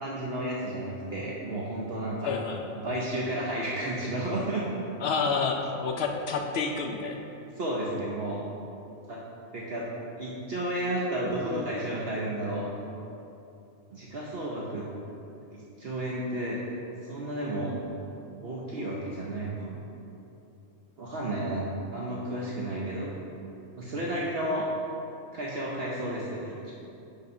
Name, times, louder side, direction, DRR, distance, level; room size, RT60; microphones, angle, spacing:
voice 1, 0.0-2.3 2.8-4.6 7.6-8.4 9.1-9.2 9.5-9.9 10.2-12.7 13.9-14.9 15.5-16.6 17.1-17.8 18.4-19.9 21.0-21.6 21.9-23.1 23.8-24.7 25.3-26.7, right 1 dB, 55° right, -4 dB, 0.8 m, -32 dB
voice 2, 2.2-2.6 5.0-7.3, left 5 dB, 65° left, 3 dB, 0.7 m, -29 dB
5.3 x 4.2 x 5.3 m, 2.8 s
omnidirectional pair, 1.4 m